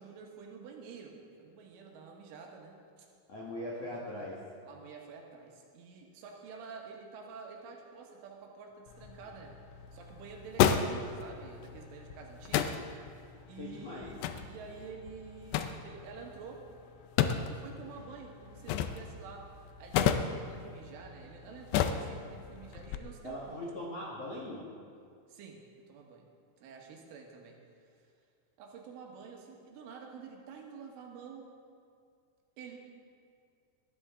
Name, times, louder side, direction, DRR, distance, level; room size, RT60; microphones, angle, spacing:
voice 1, 0.0-3.1 4.7-12.8 13.5-16.6 17.5-19.5 19.8-23.7 25.3-26.3 26.6-28.1 28.6-31.5 32.6-32.8, right 5 dB, 80° right, 0 dB, 4.1 m, -49 dB
voice 2, 3.3-4.4 13.6-14.1 23.2-24.7, left 1 dB, 60° left, -6 dB, 1.6 m, -40 dB
sound 1, 8.9-23.0, left 8 dB, 90° left, 2.3 m, -34 dB
20.0 x 13.0 x 3.7 m, 2.3 s
omnidirectional pair, 5.6 m